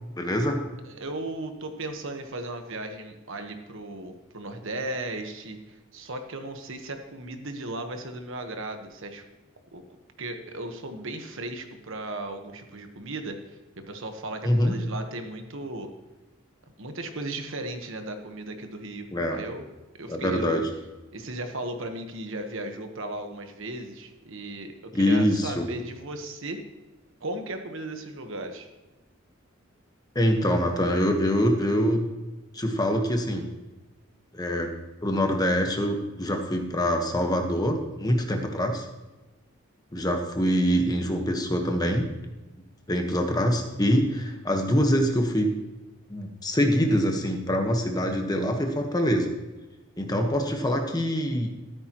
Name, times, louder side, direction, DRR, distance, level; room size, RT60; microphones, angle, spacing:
voice 1, 0.2-0.7 14.4-14.8 19.1-19.4 20.1-20.7 24.9-25.7 30.1-32.1 32.5-33.4 34.3-34.7 35.0-38.9 39.9-42.1 42.9-45.6 46.1-49.3 50.0-51.5, equal, 20° left, 3 dB, 1.3 m, -24 dB
voice 2, 0.8-9.2 9.7-9.8 10.2-15.9 16.8-19.6 20.0-20.6 21.1-26.6 27.2-28.7, right 2 dB, 65° right, 6 dB, 1.3 m, -36 dB
14.0 x 13.0 x 3.1 m, 1.1 s
head